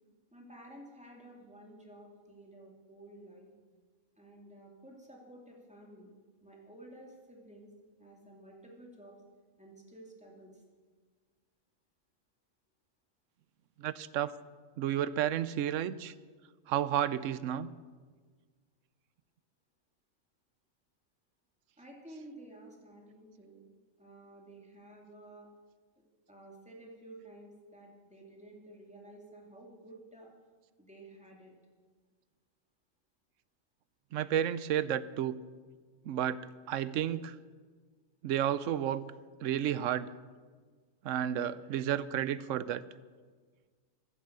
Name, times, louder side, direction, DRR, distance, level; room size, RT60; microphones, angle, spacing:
voice 1, 0.3-3.5 4.2-6.1 6.4-7.7 8.0-9.2 9.6-10.6 21.8-23.6 24.0-25.5 26.3-30.3 30.8-31.5, right 1 dB, 5° right, -2 dB, 2.7 m, -52 dB
voice 2, 13.8-14.3 14.8-16.1 16.7-17.7 34.1-35.4 36.1-37.4 38.2-39.1 39.4-40.1 41.0-42.8, right 10 dB, 75° right, 16 dB, 1.0 m, -31 dB
15.0 x 11.5 x 6.7 m, 1.5 s
omnidirectional pair, 1.4 m